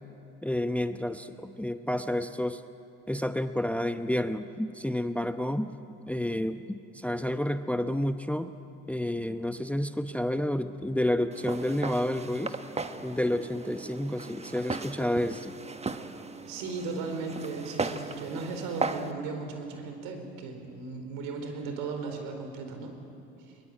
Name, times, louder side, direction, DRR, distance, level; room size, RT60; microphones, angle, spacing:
voice 1, 0.4-2.6 3.1-5.7 6.1-8.5 8.9-12.6 13.0-15.5, left 1 dB, 5° left, 10 dB, 0.8 m, -30 dB
Walk footsteps, 11.3-19.1, right 4 dB, 20° right, 1.3 m, -37 dB
voice 2, 16.4-22.9 23.5-23.6, right 4 dB, 70° right, 5 dB, 4.5 m, -36 dB
22.5 x 22.0 x 9.0 m, 2.7 s
hypercardioid pair, 70°, 35 cm